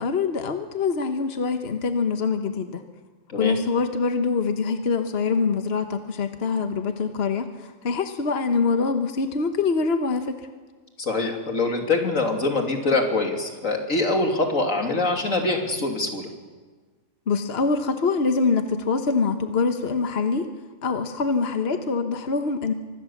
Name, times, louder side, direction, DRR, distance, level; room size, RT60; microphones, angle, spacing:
voice 1, 0.0-2.8 3.4-10.4 17.3-20.5 20.8-22.7, left 4 dB, 55° left, 7 dB, 1.4 m, -24 dB
voice 2, 11.0-16.3, left 3 dB, 90° left, 3 dB, 3.3 m, -24 dB
25.0 x 21.0 x 7.3 m, 1.4 s
omnidirectional pair, 1.3 m